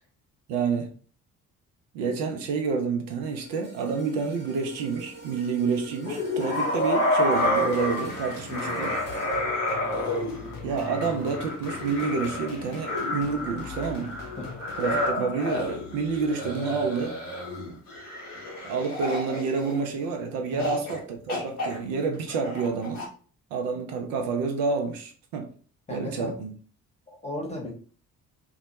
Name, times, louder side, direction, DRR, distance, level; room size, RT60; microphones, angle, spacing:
voice 1, 0.5-0.9 1.9-9.0 10.6-14.2 14.8-17.2 18.6-23.1 23.5-25.5 25.9-26.5, right 5 dB, 65° right, 0.6 m, -29 dB
sound 1, 3.3-11.6 12.1-12.3, right 3 dB, 25° right, 1.0 m, -46 dB
sound 2, 6.0-20.1 20.6-21.0 21.3-23.1, left 1 dB, 90° left, 0.7 m, -30 dB
sound 3, 7.4-15.7, left 4 dB, 50° left, 0.8 m, -43 dB
voice 2, 8.5-8.9 14.4-14.5 20.5-20.8 25.9-26.3 27.1-27.7, left 1 dB, 15° left, 0.9 m, -36 dB
2.2 x 2.0 x 2.9 m
figure-of-eight pair, 40°, 44 cm